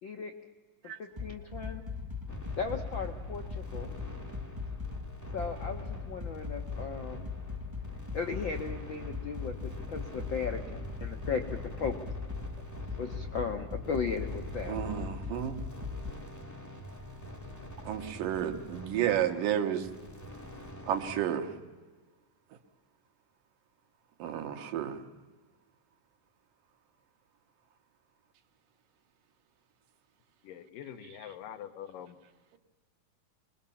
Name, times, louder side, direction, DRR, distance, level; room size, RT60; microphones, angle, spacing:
voice 1, 0.0-0.3 0.8-1.8 2.6-3.9 5.3-7.3 8.1-12.0 13.0-14.8, left 5 dB, 70° left, 4 dB, 1.1 m, -36 dB
sound 1, 1.2-16.1, left 4 dB, 15° right, 0.9 m, -39 dB
sound 2, 2.3-21.2, equal, 20° left, 0.4 m, -46 dB
voice 2, 14.7-15.6 17.8-19.9 20.9-21.5 24.2-25.0, right 10 dB, 80° right, 5 dB, 3.0 m, -31 dB
voice 3, 30.4-32.2, left 9 dB, 85° left, 8 dB, 2.9 m, -44 dB
25.0 x 21.0 x 7.1 m, 1.3 s
omnidirectional pair, 3.8 m